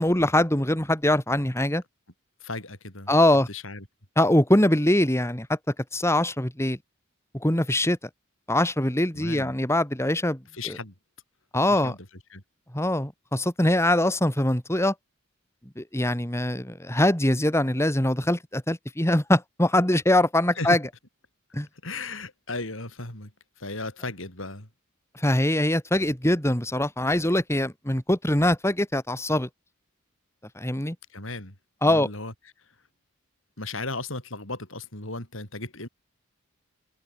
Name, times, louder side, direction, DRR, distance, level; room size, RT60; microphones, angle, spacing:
voice 1, 0.0-1.8 3.1-3.5 4.2-5.6 5.9-6.8 7.3-8.0 8.5-10.4 11.5-11.9 12.7-14.9 15.8-20.8 21.5-21.7 25.1-29.5 30.5-30.9 31.8-32.1, left 1 dB, 15° left, 3.3 m, -23 dB
voice 2, 2.4-3.1 3.5-3.9 9.1-9.5 10.5-10.9 11.7-12.4 20.6-20.8 21.8-23.3 23.6-24.7 31.1-31.6 31.8-32.8 33.6-35.9, left 2 dB, 65° left, 6.9 m, -36 dB
head